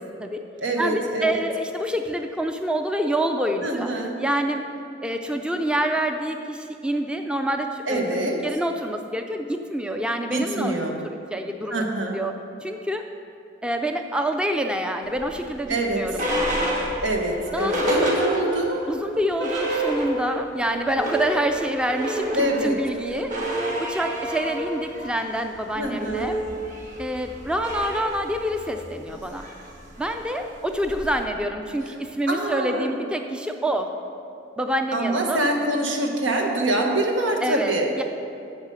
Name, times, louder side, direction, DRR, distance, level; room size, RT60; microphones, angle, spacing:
voice 1, 0.0-0.4 0.8-3.9 4.2-4.7 5.0-8.0 8.4-10.7 11.3-11.8 12.1-13.0 13.6-16.8 17.5-18.1 18.9-23.3 23.8-26.4 27.0-29.5 30.0-33.9 34.6-35.4 37.4-38.0, right 1 dB, 5° right, 5 dB, 0.4 m, -27 dB
voice 2, 0.6-1.4 3.6-4.2 7.9-8.4 10.3-11.0 11.7-12.2 15.7-16.2 17.0-18.8 22.3-22.8 25.7-26.3 32.3-33.0 34.9-37.9, right 1 dB, 90° right, 2 dB, 1.3 m, -25 dB
sound 1, 15.2-18.8 19.1-19.2 19.4-20.5 20.8-31.2, right 1 dB, 45° right, 1.5 m, -29 dB
8.8 x 7.1 x 5.6 m, 2.7 s
head